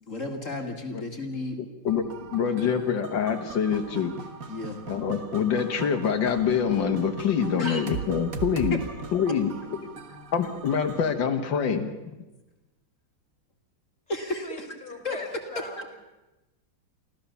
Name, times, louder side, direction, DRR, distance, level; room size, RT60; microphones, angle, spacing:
voice 1, 0.0-1.6 4.5-4.8 7.6-7.8 8.7-8.8 14.1-14.7 15.0-15.3 15.6-15.9, left 2 dB, 45° left, 4 dB, 2.1 m, -33 dB
voice 2, 1.6-2.0 2.3-4.1 4.9-8.8 9.1-9.5 10.3-11.9, left 7 dB, 80° left, 5 dB, 2.1 m, -25 dB
sound 1, 1.9-11.1, right 5 dB, 50° right, 1.7 m, -39 dB
voice 3, 14.4-15.8, left 2 dB, 5° left, 4 dB, 2.9 m, -40 dB
25.0 x 15.5 x 7.0 m, 1.1 s
omnidirectional pair, 2.0 m